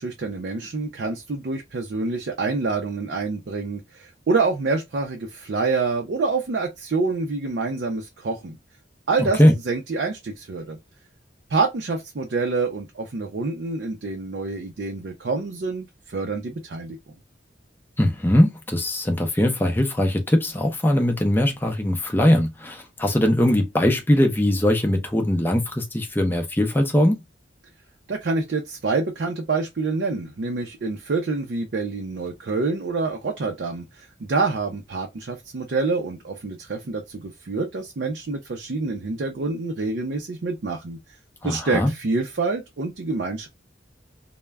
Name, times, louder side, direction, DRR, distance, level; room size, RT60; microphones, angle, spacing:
voice 1, 0.0-8.6 9.1-9.4 9.7-10.8 11.5-17.0 28.1-41.0 41.4-43.5, right 3 dB, 60° right, 0.4 m, -27 dB
voice 2, 9.2-9.5 18.0-27.2 41.4-41.9, left 1 dB, 10° left, 0.5 m, -20 dB
2.2 x 2.1 x 3.3 m
head